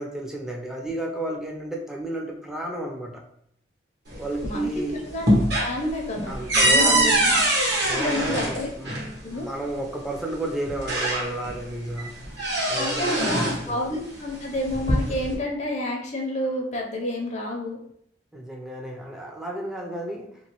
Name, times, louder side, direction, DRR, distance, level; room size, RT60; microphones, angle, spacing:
voice 1, 0.0-3.2 4.2-5.0 6.3-7.2 7.9-8.9 9.3-12.2 12.7-13.8 18.3-20.4, right 1 dB, 5° right, 0 dB, 0.5 m, -32 dB
sound 1, 4.1-4.7 5.1-9.1 10.2-10.3 10.7-11.6 12.0-13.6 14.5-15.3, right 1 dB, 65° right, 1.2 m, -23 dB
voice 2, 4.4-5.3 5.6-7.4 8.0-8.7 9.2-9.5 12.7-17.8, left 1 dB, 40° left, 0 dB, 0.6 m, -29 dB
3.1 x 3.0 x 3.0 m, 0.72 s
head